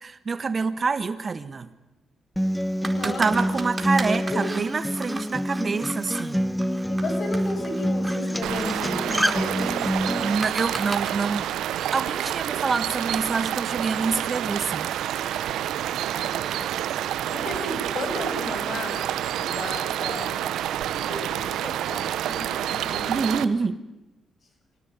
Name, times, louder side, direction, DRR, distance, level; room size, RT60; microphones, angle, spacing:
voice 1, 0.0-1.7 3.0-6.5 10.2-11.5 11.9-14.9 23.1-23.8, right 4 dB, 45° right, 13 dB, 1.5 m, -26 dB
Acoustic guitar, 2.4-10.3, equal, 5° left, 1.3 m, -27 dB
voice 2, 2.8-3.3 4.2-4.4 6.6-9.8 16.2-16.8 17.3-19.1 19.4-20.5 20.9-23.3, left 2 dB, 55° left, 6 dB, 6.9 m, -35 dB
sound 1, 2.8-6.3 6.6-11.1, right 2 dB, 25° right, 4.5 m, -37 dB
sound 2, 8.4-23.4, right 11 dB, 80° right, 1.0 m, -28 dB
26.0 x 18.0 x 9.6 m, 0.95 s
supercardioid pair, 55°, 0 cm